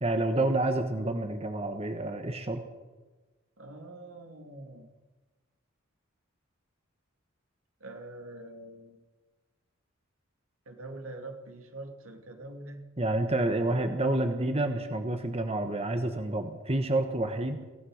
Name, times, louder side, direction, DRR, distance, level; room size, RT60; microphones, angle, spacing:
voice 1, 0.0-2.6 13.0-17.7, right 2 dB, 30° right, 6 dB, 1.4 m, -29 dB
voice 2, 3.6-4.9 7.8-9.0 10.7-12.9, right 2 dB, 75° right, 4 dB, 2.9 m, -44 dB
24.5 x 16.5 x 6.6 m, 1.3 s
head